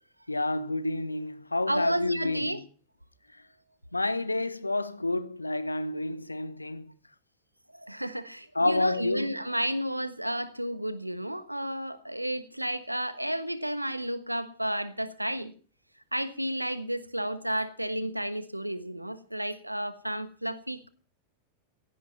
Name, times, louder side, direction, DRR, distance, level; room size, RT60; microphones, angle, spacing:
voice 1, 0.3-2.7 3.9-6.9 8.5-9.4, left 2 dB, 85° left, 1.0 m, -29 dB
voice 2, 1.7-2.6 7.7-15.5 16.1-20.9, right 1 dB, 90° right, 1.3 m, -32 dB
16.0 x 15.5 x 4.3 m
figure-of-eight pair, 90°, 0 cm